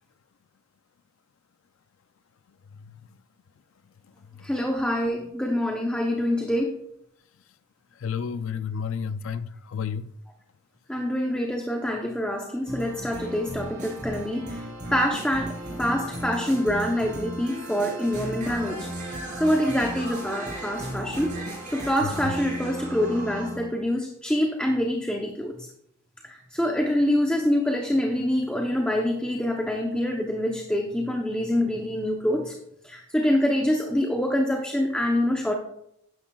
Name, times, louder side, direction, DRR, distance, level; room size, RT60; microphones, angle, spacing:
voice 1, 4.4-6.8 10.9-14.6 14.9-21.3 21.7-25.7 26.2-32.5 32.8-35.5, left 1 dB, 5° left, 0.7 m, -26 dB
voice 2, 8.0-10.1 22.0-22.1, left 6 dB, 65° left, 0.4 m, -31 dB
sound 1, 12.7-23.7, right 1 dB, 35° right, 3.5 m, -35 dB
12.0 x 10.0 x 2.3 m
head